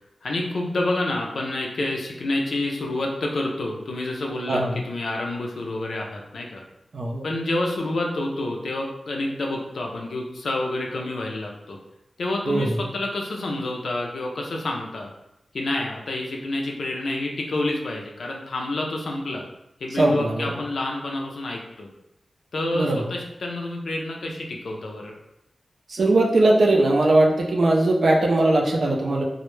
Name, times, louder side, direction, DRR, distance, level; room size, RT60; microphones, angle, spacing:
voice 1, 0.2-6.6 7.2-11.8 12.2-15.1 15.5-19.4 19.8-21.9 22.5-25.1, left 2 dB, 85° left, 0 dB, 0.4 m, -28 dB
voice 2, 4.5-4.8 6.9-7.3 12.5-12.8 19.9-20.5 22.7-23.0 25.9-29.2, right 2 dB, 75° right, -1 dB, 0.4 m, -20 dB
2.1 x 2.0 x 3.0 m, 0.87 s
cardioid pair, 55°, 0 cm